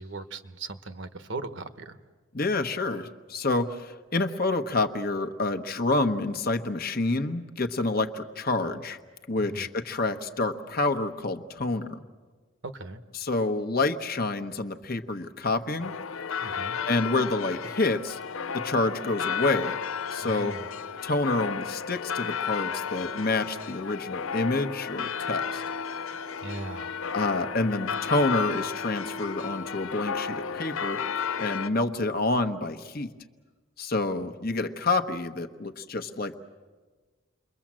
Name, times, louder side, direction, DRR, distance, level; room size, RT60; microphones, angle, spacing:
voice 1, 0.0-2.0 9.4-9.7 12.6-13.0 16.4-16.8 20.2-20.7 26.4-26.9, right 2 dB, 60° right, 10 dB, 1.2 m, -38 dB
voice 2, 2.3-9.0 9.3-12.0 13.1-15.9 16.9-18.2 18.5-19.8 20.1-20.5 21.0-25.6 27.1-31.0 31.4-33.1 33.8-36.4, left 2 dB, 45° left, 7 dB, 1.1 m, -28 dB
sound 1, 15.8-31.7, left 6 dB, 85° left, 0.7 m, -33 dB
29.0 x 22.5 x 7.5 m, 1.4 s
head